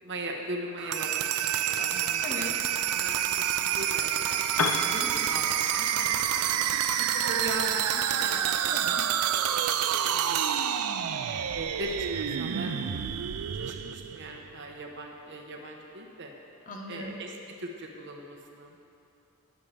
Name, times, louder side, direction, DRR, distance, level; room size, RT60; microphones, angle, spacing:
voice 1, 0.0-2.5 2.9-4.4 4.9-6.6 7.0-8.5 9.2-9.4 9.9-10.4 11.1-13.0 13.6-16.3 16.9-18.8, right 1 dB, 55° right, 1 dB, 1.1 m, -40 dB
sound 1, 0.8-14.6, right 9 dB, 85° right, 0.4 m, -28 dB
voice 2, 2.2-2.5 7.9-8.0 8.6-9.0 16.7-17.2, left 2 dB, 35° left, 0 dB, 1.1 m, -39 dB
Piano, 4.5-12.3, left 4 dB, 80° left, 0.7 m, -39 dB
18.0 x 7.4 x 3.4 m, 2.9 s
head